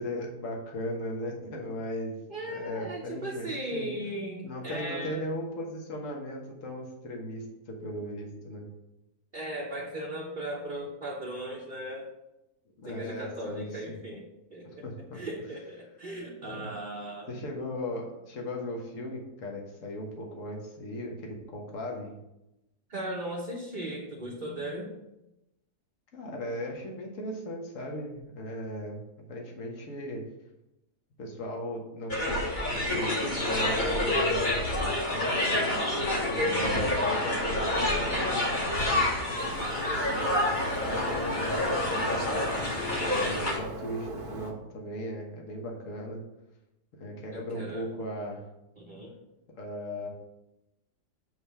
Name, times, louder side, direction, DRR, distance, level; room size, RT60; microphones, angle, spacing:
voice 1, 0.0-3.9 4.4-8.6 12.8-14.0 14.8-15.2 16.4-16.7 17.3-22.1 26.1-29.0 29.3-30.2 31.2-32.5 32.7-35.6 36.2-40.2 40.8-42.6 43.2-46.2 47.0-48.5 49.6-50.1, equal, 55° left, 0 dB, 1.6 m, -37 dB
voice 2, 2.3-5.2 9.3-12.1 12.8-14.2 14.5-14.8 15.1-17.3 22.9-24.9 47.3-47.9 48.8-49.1, right 1 dB, 35° right, -3 dB, 1.0 m, -37 dB
sound 1, 32.1-43.6, left 1 dB, 30° left, 1.5 m, -28 dB
Bird, 39.3-44.5, right 2 dB, 75° right, 1.7 m, -39 dB
7.9 x 3.4 x 5.6 m, 0.91 s
omnidirectional pair, 1.7 m